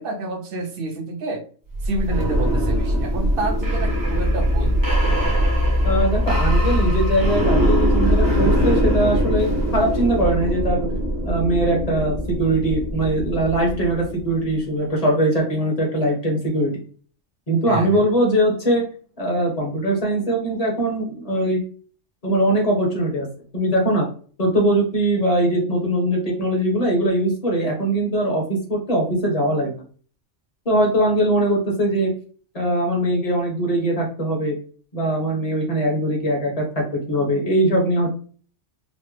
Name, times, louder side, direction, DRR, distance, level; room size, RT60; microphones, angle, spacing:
voice 1, 0.0-1.4 1.8-5.5 17.7-18.0, right 2 dB, 55° right, 3 dB, 0.8 m, -29 dB
sound 1, 1.7-14.5, equal, 20° right, 0.8 m, -21 dB
voice 2, 5.8-10.9 11.3-16.8 17.5-18.8 19.2-21.6 22.2-23.3 23.5-24.1 24.4-29.8 30.6-32.1 32.5-34.6 34.9-38.1, right 1 dB, 30° left, -1 dB, 1.1 m, -21 dB
4.1 x 2.1 x 3.1 m, 0.43 s
omnidirectional pair, 1.3 m